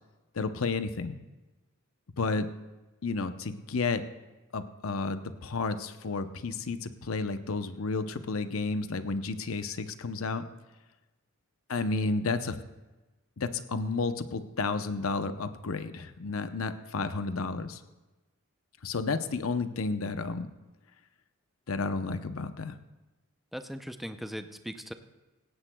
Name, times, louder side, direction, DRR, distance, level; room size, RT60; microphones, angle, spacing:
voice 1, 0.3-1.2 2.2-2.5 3.0-4.0 4.5-10.4 11.7-12.6 13.4-17.8 18.8-20.5 21.7-22.8, left 3 dB, 75° left, 10 dB, 0.7 m, -31 dB
voice 2, 23.5-24.9, equal, ahead, 7 dB, 0.5 m, -39 dB
17.5 x 16.0 x 2.3 m, 1.1 s
head